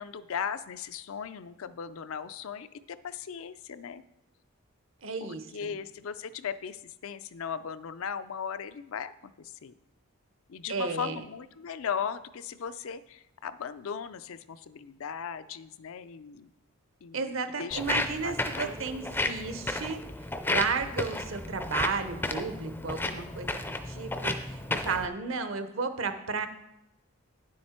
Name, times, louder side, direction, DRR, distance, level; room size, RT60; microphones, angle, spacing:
voice 1, 0.0-4.0 5.2-9.7 10.5-16.5 17.0-17.8 18.2-18.7, left 7 dB, 70° left, 13 dB, 0.4 m, -38 dB
voice 2, 5.0-5.7 10.7-11.2 17.1-20.0 20.5-26.5, right 4 dB, 65° right, 9 dB, 0.8 m, -33 dB
Walk footsteps, 17.7-25.1, left 2 dB, 10° left, 0.4 m, -33 dB
9.7 x 7.6 x 4.3 m, 0.85 s
head